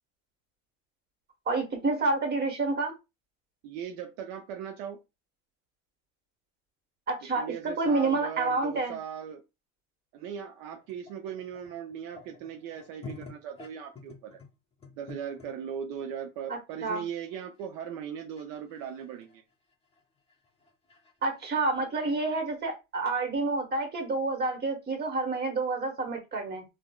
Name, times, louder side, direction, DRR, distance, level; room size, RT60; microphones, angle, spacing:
voice 1, 1.5-2.9 7.1-9.0 16.8-17.0 21.2-26.6, right 3 dB, 25° right, 3 dB, 1.1 m, -29 dB
voice 2, 3.6-5.0 7.2-9.4 10.1-14.4 15.0-19.4, right 8 dB, 70° right, 5 dB, 0.6 m, -39 dB
sound 1, 10.8-15.5 16.0-16.2 16.9-17.0 17.3-22.1, left 4 dB, 15° left, 0.8 m, -49 dB
3.6 x 2.0 x 2.2 m, 0.25 s
supercardioid pair, 115°, 38 cm